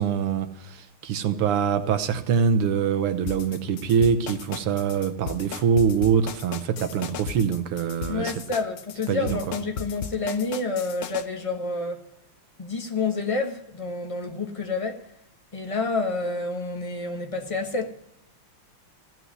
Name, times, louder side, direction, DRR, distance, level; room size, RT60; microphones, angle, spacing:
voice 1, 0.0-8.3 9.1-9.4, right 7 dB, 85° right, 2.0 m, -24 dB
sound 1, 3.3-11.3, left 8 dB, 65° left, 0.9 m, -36 dB
voice 2, 8.1-12.0 12.6-15.1 15.5-17.9, left 3 dB, 20° left, 1.1 m, -29 dB
15.5 x 6.2 x 9.5 m
omnidirectional pair, 2.4 m